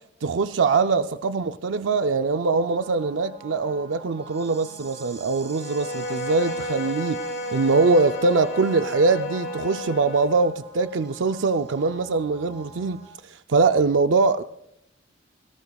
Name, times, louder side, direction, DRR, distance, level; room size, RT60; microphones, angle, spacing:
voice 1, 0.2-7.2 7.5-14.4, right 4 dB, 85° right, 0.5 m, -22 dB
sound 1, 2.7-13.1, right 4 dB, 30° right, 4.1 m, -46 dB
Bowed string instrument, 5.5-10.4, left 1 dB, 90° left, 4.2 m, -32 dB
18.5 x 18.0 x 2.4 m
head